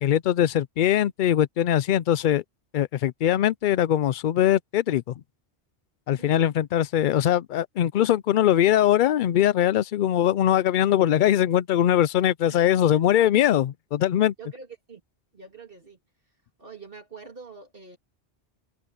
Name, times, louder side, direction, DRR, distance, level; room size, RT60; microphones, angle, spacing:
voice 1, 0.0-2.4 2.7-5.0 6.1-14.3, left 11 dB, 60° left, 0.6 m, -21 dB
voice 2, 6.1-6.5 12.5-12.8 14.4-15.0 15.3-16.0 16.6-18.0, right 4 dB, 55° right, 3.1 m, -45 dB
omnidirectional pair, 1.1 m